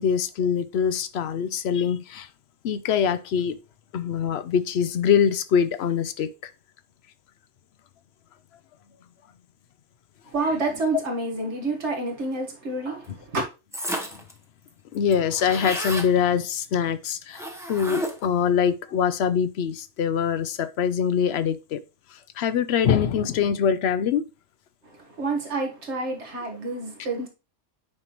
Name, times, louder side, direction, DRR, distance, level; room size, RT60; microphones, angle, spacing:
voice 1, 0.0-2.3 2.6-3.6 3.9-6.5 14.9-17.4 17.7-21.8 22.1-24.3, left 7 dB, 65° left, 0.8 m, -24 dB
voice 2, 10.3-13.4 24.8-27.3, right 2 dB, 70° right, 1.8 m, -28 dB
sound 1, 13.7-14.3 14.7-14.8 14.9-16.1 17.3-18.4, right 1 dB, 5° right, 0.8 m, -32 dB
8.8 x 5.5 x 3.0 m
omnidirectional pair, 1.2 m